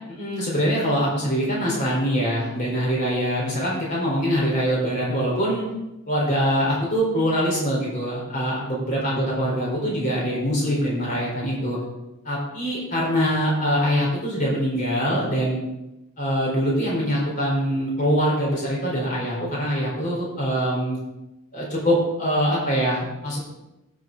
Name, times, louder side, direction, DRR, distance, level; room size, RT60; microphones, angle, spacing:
voice 1, 0.1-5.6 6.1-11.8 12.2-15.6 16.2-21.0 21.5-23.4, equal, 35° left, -4 dB, 4.3 m, -23 dB
15.5 x 6.5 x 3.9 m, 0.94 s
head